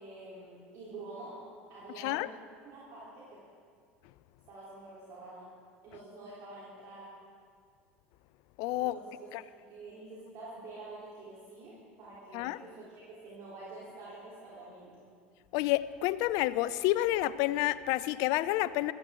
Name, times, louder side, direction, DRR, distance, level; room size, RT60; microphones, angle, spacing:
voice 1, 0.0-1.4 1.7-2.3 2.6-3.4 4.5-5.5 5.8-7.1 8.8-9.3 9.6-15.0, right 2 dB, 55° right, -8 dB, 3.7 m, -47 dB
voice 2, 2.0-2.3 8.6-9.0 9.3-9.4 12.3-12.6 15.5-18.9, left 16 dB, 60° left, 17 dB, 0.5 m, -29 dB
15.5 x 13.0 x 3.8 m, 2.3 s
hypercardioid pair, 80°, 7 cm